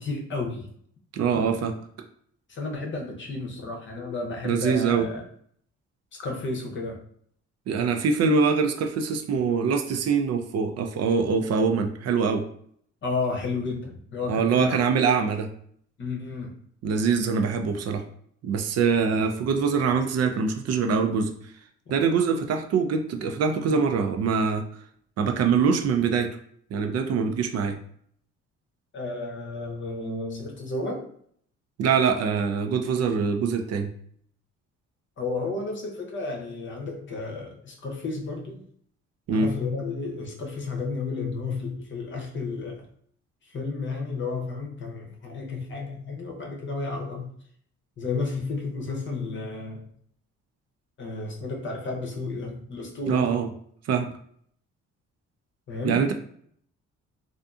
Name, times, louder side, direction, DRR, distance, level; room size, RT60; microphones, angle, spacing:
voice 1, 0.0-0.7 2.5-5.2 6.2-7.0 13.0-14.8 16.0-16.5 25.6-25.7 28.9-31.1 35.2-38.6 39.3-42.9 43.5-47.3 48.0-49.8 51.0-53.3 55.7-56.1, left 3 dB, 40° left, 1 dB, 0.7 m, -32 dB
voice 2, 1.1-1.8 4.4-5.1 7.7-12.4 14.3-15.5 16.8-18.0 18.4-21.3 21.9-24.6 25.2-26.3 26.7-27.8 31.8-33.9 39.3-39.5 53.1-53.5 53.9-54.1 55.8-56.1, right 5 dB, 55° right, 5 dB, 0.4 m, -24 dB
2.5 x 2.5 x 2.3 m, 0.64 s
cardioid pair, 90°, 30 cm